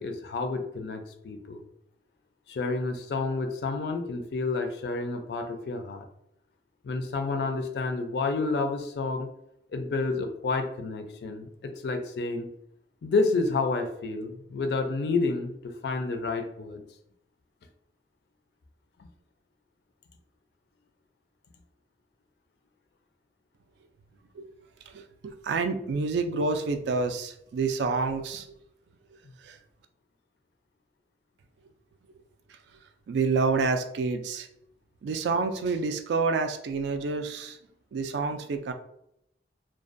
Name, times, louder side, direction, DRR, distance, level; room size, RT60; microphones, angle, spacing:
voice 1, 0.0-1.6 2.5-6.1 6.8-9.3 9.7-12.5 13.0-16.8 19.0-19.1, left 3 dB, 65° left, 6 dB, 0.4 m, -30 dB
voice 2, 24.9-28.5 29.4-29.6 32.5-32.6 33.1-34.5 35.0-37.6 37.9-38.7, right 4 dB, 75° right, 8 dB, 0.3 m, -28 dB
2.5 x 2.2 x 2.5 m, 0.77 s
head